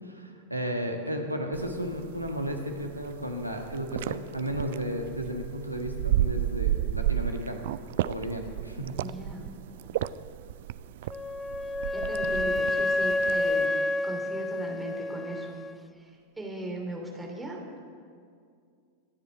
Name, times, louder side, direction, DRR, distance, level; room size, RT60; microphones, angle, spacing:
voice 1, 0.2-7.6 8.0-9.0, equal, 90° right, 3 dB, 1.6 m, -33 dB
sound 1, 1.5-13.7, right 13 dB, 55° right, 0.3 m, -33 dB
voice 2, 9.0-9.9 11.9-13.8 14.0-15.6 16.0-17.8, right 1 dB, 10° right, 0 dB, 2.9 m, -38 dB
Wind instrument woodwind instrument, 11.1-15.7, left 2 dB, 10° left, 0.4 m, -29 dB
25.0 x 10.0 x 4.5 m, 2.2 s
figure-of-eight pair, 90°, 0 cm